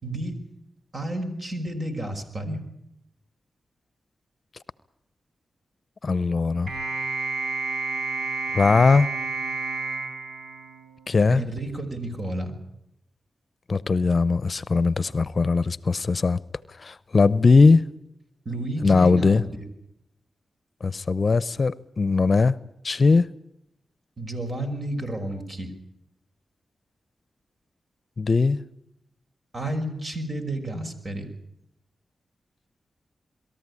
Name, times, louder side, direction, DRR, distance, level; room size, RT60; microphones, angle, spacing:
voice 1, 0.0-0.4 0.9-2.6 11.3-12.5 18.5-19.6 24.2-25.7 29.5-31.3, right 1 dB, 45° right, 5.6 m, -31 dB
voice 2, 6.0-6.7 8.5-9.1 11.1-11.4 13.7-16.4 16.8-17.8 18.8-19.4 20.8-22.6 22.8-23.3 28.2-28.6, left 4 dB, 50° left, 0.7 m, -20 dB
sound 1, 6.7-11.2, right 3 dB, 80° right, 6.0 m, -30 dB
23.0 x 14.0 x 9.8 m
cardioid pair, 55°, 0 cm